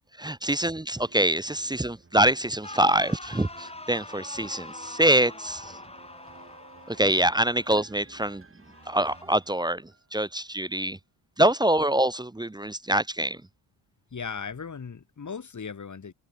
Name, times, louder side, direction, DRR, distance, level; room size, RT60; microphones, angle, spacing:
voice 1, 0.2-5.8 6.9-8.4 8.9-11.0 11.4-13.4, right 1 dB, 10° right, 0.9 m, -25 dB
sound 1, 0.9-10.3 10.8-10.9, right 4 dB, 30° right, 4.2 m, -54 dB
sound 2, 2.6-7.8 8.6-9.2, left 2 dB, 15° left, 4.0 m, -43 dB
voice 2, 14.1-16.1, left 6 dB, 40° left, 4.8 m, -37 dB
supercardioid pair, 60°, 46 cm